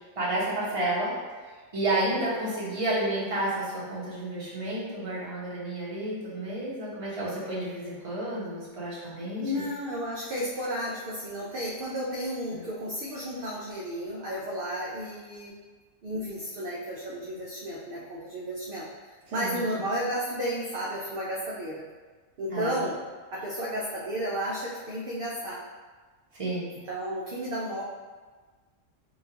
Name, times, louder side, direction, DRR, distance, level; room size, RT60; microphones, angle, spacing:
voice 1, 0.2-1.1 1.4-9.6 12.5-12.6 19.3-19.6 22.5-22.9 26.3-26.7, right 1 dB, 30° right, -8 dB, 1.0 m, -31 dB
voice 2, 9.2-15.5 16.0-21.8 22.4-23.0 23.3-25.6 26.7-27.8, equal, 55° right, -5 dB, 0.7 m, -33 dB
5.4 x 2.4 x 2.8 m, 1.4 s
omnidirectional pair, 1.3 m